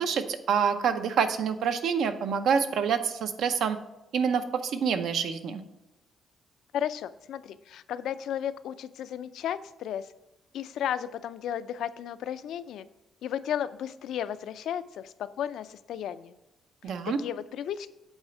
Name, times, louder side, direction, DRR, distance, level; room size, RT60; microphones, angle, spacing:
voice 1, 0.0-3.8 4.1-5.6 16.8-17.2, right 6 dB, 75° right, 8 dB, 0.6 m, -27 dB
voice 2, 6.7-10.1 10.5-12.9 13.2-16.3 16.8-17.9, left 9 dB, 80° left, 13 dB, 0.4 m, -34 dB
8.0 x 4.2 x 5.8 m, 0.97 s
cardioid pair, 140°, 0 cm